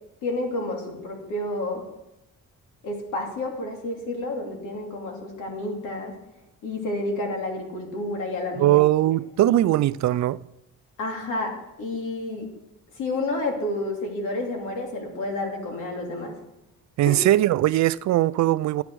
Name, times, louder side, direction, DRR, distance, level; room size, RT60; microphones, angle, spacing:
voice 1, 0.2-1.8 2.8-6.1 6.6-8.8 9.5-9.6 11.0-12.5 12.9-16.3 17.1-17.2, left 2 dB, 85° left, 2.9 m, -30 dB
voice 2, 8.6-10.4 17.0-18.8, right 14 dB, 65° right, 0.5 m, -20 dB
12.5 x 9.0 x 4.7 m
cardioid pair, 90°, 30 cm